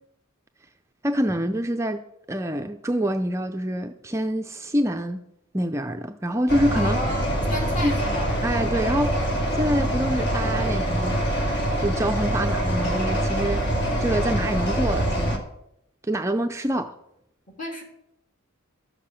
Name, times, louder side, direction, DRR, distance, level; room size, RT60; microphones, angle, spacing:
voice 1, 1.0-5.2 5.5-7.0 7.8-8.0 8.4-9.1 9.5-11.2 11.8-13.7 14.0-15.4 16.0-16.9, equal, 15° right, 0.5 m, -26 dB
sound 1, 6.5-15.4, right 1 dB, 50° left, 2.1 m, -24 dB
voice 2, 6.7-8.3 17.6-17.8, left 1 dB, 35° left, 3.3 m, -33 dB
12.5 x 6.8 x 7.5 m
head